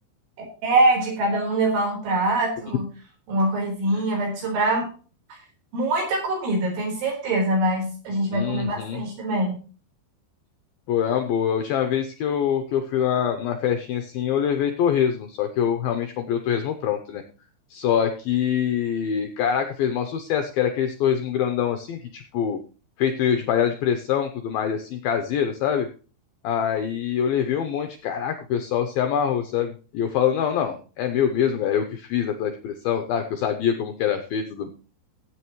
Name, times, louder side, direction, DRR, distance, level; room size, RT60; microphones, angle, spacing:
voice 1, 0.6-2.9 3.3-4.9 5.7-9.5, right 2 dB, 75° right, 0 dB, 6.7 m, -23 dB
voice 2, 8.3-9.0 10.9-17.2 17.7-22.6 23.0-25.9 26.4-34.7, left 8 dB, 90° left, 6 dB, 2.1 m, -24 dB
16.0 x 8.8 x 3.1 m, 0.37 s
omnidirectional pair, 5.4 m